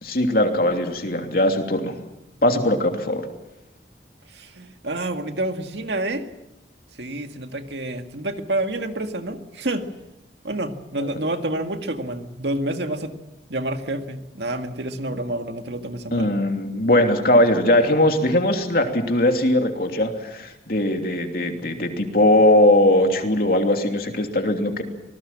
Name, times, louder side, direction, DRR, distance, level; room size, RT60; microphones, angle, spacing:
voice 1, 0.0-1.9 2.4-3.2 11.0-11.1 16.1-24.8, left 1 dB, 55° left, 4 dB, 3.0 m, -20 dB
voice 2, 4.3-6.3 7.0-9.8 10.4-13.1 13.5-16.3, right 1 dB, 80° right, 6 dB, 2.0 m, -28 dB
26.0 x 19.5 x 7.5 m, 0.90 s
head